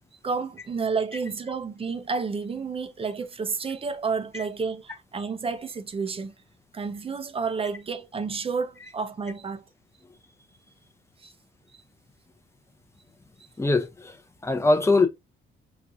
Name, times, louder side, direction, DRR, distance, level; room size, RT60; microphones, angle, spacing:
voice 1, 0.2-6.3 6.7-9.6 11.2-11.3, right 5 dB, 30° right, 0.5 m, -30 dB
voice 2, 13.6-14.2 14.4-15.1, left 2 dB, 15° left, 0.6 m, -22 dB
4.6 x 2.4 x 2.6 m
cardioid pair, 90°, 20 cm